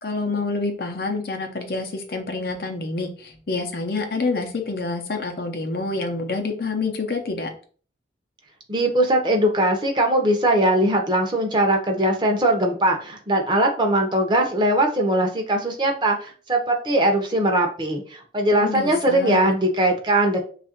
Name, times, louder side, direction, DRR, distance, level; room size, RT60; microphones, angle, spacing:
voice 1, 0.0-7.5 18.5-19.5, left 3 dB, 55° left, 4 dB, 0.6 m, -27 dB
voice 2, 8.7-20.4, right 1 dB, 25° right, 3 dB, 0.7 m, -20 dB
3.2 x 2.4 x 4.3 m, 0.42 s
head